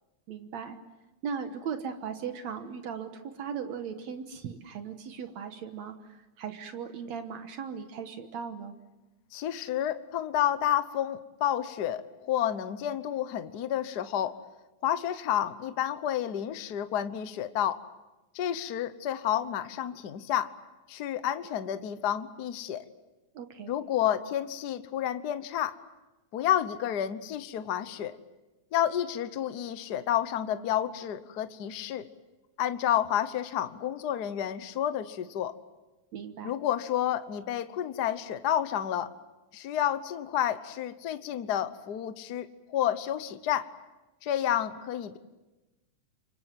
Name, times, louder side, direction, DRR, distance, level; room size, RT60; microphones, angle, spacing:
voice 1, 0.3-0.8 1.2-8.7 23.3-23.7 36.1-36.5, right 7 dB, 70° right, 7 dB, 2.4 m, -38 dB
voice 2, 9.3-14.4 14.8-17.8 18.3-20.5 20.9-22.8 23.7-25.8 26.3-28.2 28.7-32.1 32.6-35.5 36.4-39.1 39.5-43.7 44.2-45.2, left 11 dB, 85° left, 11 dB, 0.8 m, -30 dB
29.0 x 25.0 x 7.5 m, 1.1 s
omnidirectional pair, 3.4 m